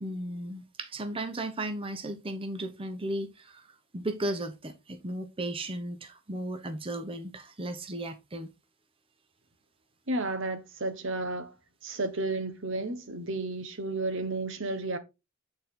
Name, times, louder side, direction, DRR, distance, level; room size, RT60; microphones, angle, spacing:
voice 1, 0.0-3.7 3.9-8.5, right 1 dB, 25° right, 0.8 m, -35 dB
voice 2, 10.1-11.5 11.8-15.0, right 2 dB, 65° right, 1.1 m, -32 dB
8.9 x 4.4 x 3.7 m
head